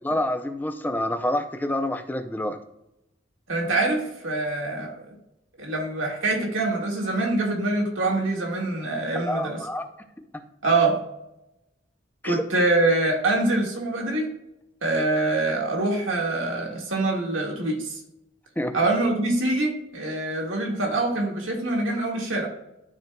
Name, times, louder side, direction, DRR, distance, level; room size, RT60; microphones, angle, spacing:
voice 1, 0.0-2.6 9.3-9.9 12.2-12.4 18.6-18.7, left 1 dB, 10° left, 7 dB, 0.5 m, -27 dB
voice 2, 3.5-5.0 5.6-9.6 10.6-11.0 12.2-14.3 14.8-18.0 18.7-22.5, right 2 dB, 75° right, 0 dB, 1.7 m, -24 dB
12.0 x 4.4 x 2.2 m, 0.86 s
head